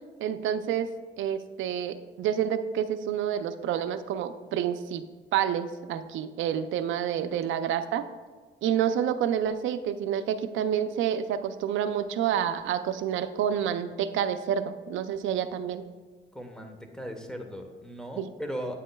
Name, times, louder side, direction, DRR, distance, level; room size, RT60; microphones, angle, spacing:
voice 1, 0.2-0.9 1.2-5.0 5.3-8.1 8.6-15.9 18.2-18.3, right 9 dB, 80° right, 10 dB, 0.5 m, -28 dB
voice 2, 16.3-18.8, equal, 5° left, 4 dB, 1.1 m, -37 dB
9.1 x 7.5 x 2.3 m, 1.5 s
cardioid pair, 90°, 20 cm